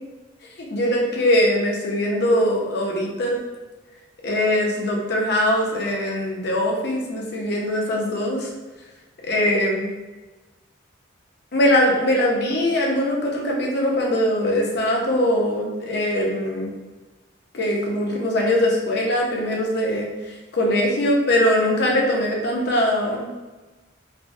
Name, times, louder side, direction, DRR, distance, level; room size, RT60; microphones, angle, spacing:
voice 1, 0.7-3.4 4.2-8.5 9.2-9.9 11.5-16.7 17.5-23.3, left 1 dB, 55° left, -1 dB, 0.5 m, -21 dB
3.2 x 2.1 x 2.6 m, 1.2 s
head